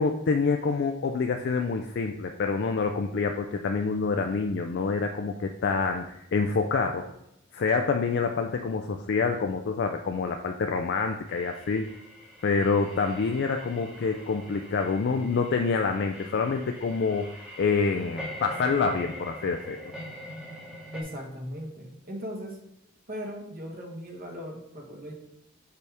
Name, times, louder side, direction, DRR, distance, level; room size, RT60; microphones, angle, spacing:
voice 1, 0.0-6.0 6.3-7.1 7.5-11.9 12.4-17.3 17.6-19.8, left 4 dB, 55° left, 4 dB, 0.4 m, -27 dB
sound 1, 11.3-21.0, equal, 5° right, 1.1 m, -43 dB
voice 2, 20.9-22.6 23.1-25.1, equal, 45° right, 0 dB, 1.3 m, -38 dB
6.8 x 5.0 x 3.4 m, 0.84 s
head